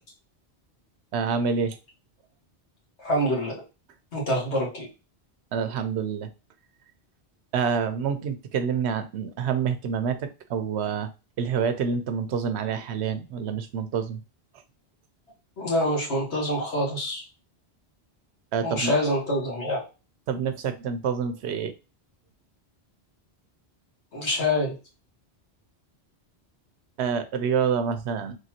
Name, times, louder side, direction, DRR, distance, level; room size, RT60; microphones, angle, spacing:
voice 1, 1.1-1.8 5.5-6.3 7.5-11.1 11.4-14.2 18.5-18.9 20.3-21.7 27.0-28.4, right 6 dB, 80° right, 10 dB, 0.9 m, -27 dB
voice 2, 3.0-3.6 4.1-4.9 15.6-17.2 18.6-19.9 24.1-24.7, left 1 dB, 85° left, -3 dB, 1.8 m, -26 dB
3.8 x 3.3 x 2.8 m, 0.30 s
omnidirectional pair, 1.1 m